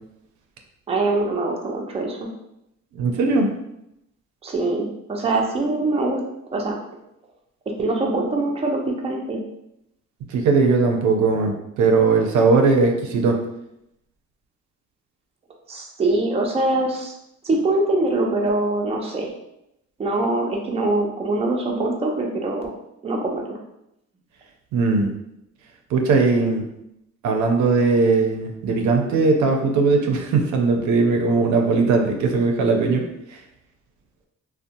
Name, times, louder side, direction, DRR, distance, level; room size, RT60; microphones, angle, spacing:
voice 1, 0.9-2.3 4.4-6.2 6.5-6.8 7.8-9.4 15.7-17.1 17.4-19.3 20.0-22.7 23.0-23.6, right 2 dB, 20° right, 0 dB, 0.5 m, -23 dB
voice 2, 2.9-3.5 10.3-13.4 24.7-25.1 25.9-26.6 27.2-33.0 33.3-33.4, right 4 dB, 75° right, 3 dB, 0.5 m, -19 dB
2.7 x 2.1 x 2.5 m, 0.83 s
cardioid pair, 90°, 30 cm